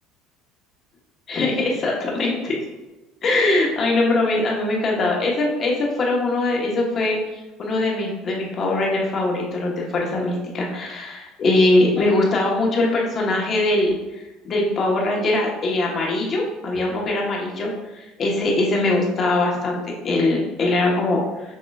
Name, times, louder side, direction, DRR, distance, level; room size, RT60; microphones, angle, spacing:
voice 1, 1.3-2.6 3.2-14.0 14.4-21.2, left 2 dB, 40° left, -1 dB, 1.2 m, -22 dB
6.4 x 2.9 x 2.4 m, 1.1 s
supercardioid pair, 100°, 0 cm